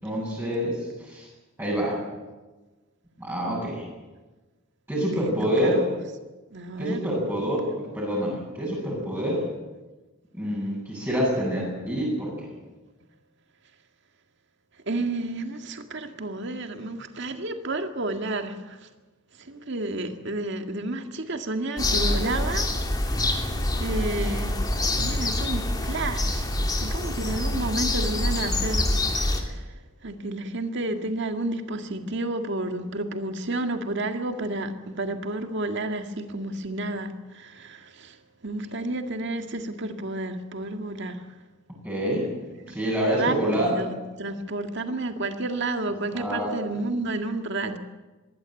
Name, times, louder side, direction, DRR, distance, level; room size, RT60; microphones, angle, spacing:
voice 1, 0.0-1.3 1.6-2.0 3.2-3.9 4.9-5.8 6.8-9.4 10.3-12.5 41.8-42.3 42.7-43.7 46.1-46.5, equal, 10° right, 7.7 m, -27 dB
voice 2, 5.2-6.0 6.5-7.0 14.9-18.9 19.4-22.7 23.0-23.5 23.8-24.6 25.0-26.5 26.8-28.9 29.2-29.7 30.0-38.2 38.4-41.3 43.1-47.8, right 2 dB, 60° right, 1.9 m, -31 dB
sound 1, 21.8-29.4, left 1 dB, 20° left, 2.8 m, -26 dB
21.5 x 16.0 x 9.0 m
head